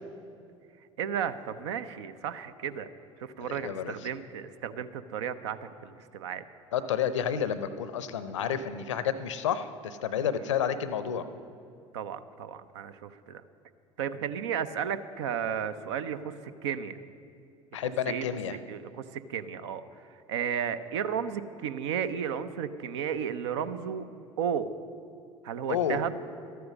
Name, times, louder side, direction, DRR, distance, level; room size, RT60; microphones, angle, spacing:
voice 1, 1.0-2.9 3.2-6.4 10.4-10.5 11.9-13.4 14.0-17.0 17.8-18.3 18.6-24.0 24.4-24.7 25.4-26.2, right 8 dB, 65° right, 12 dB, 0.6 m, -34 dB
voice 2, 3.5-3.9 6.7-11.2 17.7-18.6 25.7-26.0, left 8 dB, 70° left, 13 dB, 0.6 m, -30 dB
13.0 x 9.4 x 6.1 m, 2.5 s
figure-of-eight pair, 65°, 16 cm